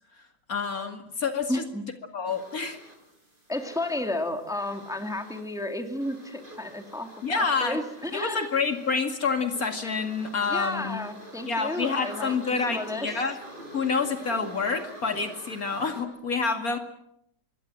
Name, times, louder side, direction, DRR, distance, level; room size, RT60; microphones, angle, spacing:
voice 1, 0.5-1.6 2.1-2.8 7.2-7.8 8.1-11.0 11.5-13.3 13.7-16.8, left 4 dB, 50° left, 6 dB, 2.6 m, -28 dB
voice 2, 1.5-1.8 3.5-8.6 10.5-13.1, left 1 dB, ahead, 5 dB, 2.3 m, -32 dB
sound 1, 2.3-16.0, right 1 dB, 25° right, 5.6 m, -47 dB
26.0 x 21.0 x 7.7 m, 0.77 s
omnidirectional pair, 1.9 m